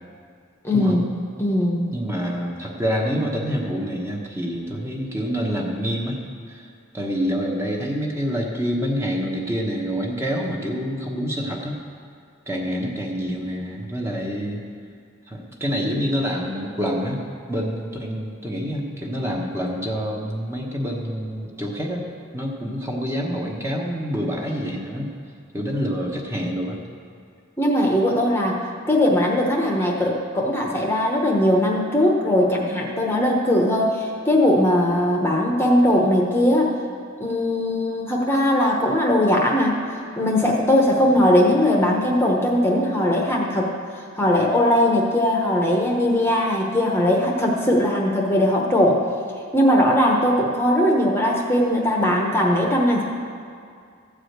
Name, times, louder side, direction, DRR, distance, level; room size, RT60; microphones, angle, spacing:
voice 1, 0.6-1.1 1.4-1.9 27.6-28.6 28.9-36.7 37.2-39.7 40.2-49.0 49.5-53.0, left 1 dB, 10° left, -1 dB, 1.0 m, -19 dB
voice 2, 1.9-6.2 6.5-11.8 12.5-14.6 15.3-17.2 17.5-22.1 22.3-25.1 25.5-26.8 41.1-41.2, equal, 10° right, -1 dB, 1.0 m, -27 dB
14.0 x 4.9 x 7.9 m, 2.3 s
head